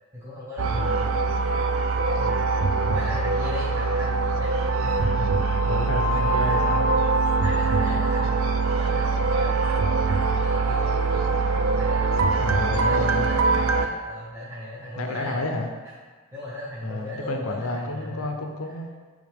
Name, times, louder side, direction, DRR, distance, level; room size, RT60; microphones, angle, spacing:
voice 1, 0.1-1.1 2.2-2.4 2.9-5.4 6.1-6.6 7.4-11.0 11.7-15.4 16.3-18.3, left 1 dB, 15° right, -9 dB, 1.0 m, -37 dB
sound 1, 0.6-13.9, right 3 dB, 70° right, 0.5 m, -23 dB
voice 2, 0.7-1.1 5.6-6.9 12.4-13.3 15.0-15.7 16.8-18.9, left 2 dB, 90° left, 4 dB, 0.8 m, -30 dB
8.6 x 3.6 x 3.5 m, 1.4 s
head